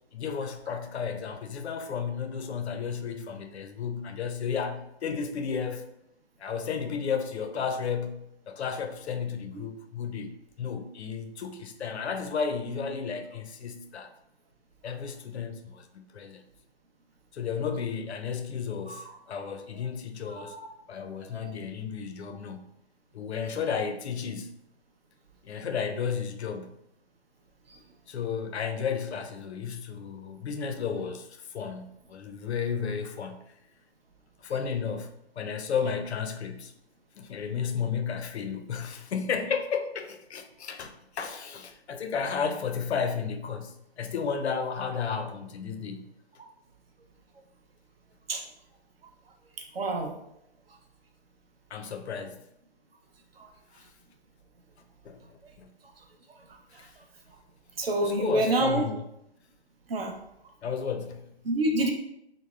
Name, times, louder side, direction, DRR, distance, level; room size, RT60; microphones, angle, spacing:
voice 1, 0.1-5.9 6.4-14.1 14.8-16.4 17.3-20.6 20.9-22.7 23.1-24.5 25.4-26.7 28.1-33.4 34.4-35.1 35.4-36.7 37.2-46.1 51.7-52.4 53.7-53.8 55.0-55.2 55.6-55.7 56.8-56.9 58.0-59.0 60.6-61.3, left 6 dB, 85° left, 0.5 m, -33 dB
voice 2, 20.3-20.7 21.3-21.5 48.3-48.4 49.7-50.1 53.4-53.5 56.7-56.9 57.8-58.8 59.9-60.1 61.4-61.9, right 1 dB, 65° right, 0.6 m, -27 dB
3.4 x 2.0 x 2.3 m
hypercardioid pair, 170°, 32 cm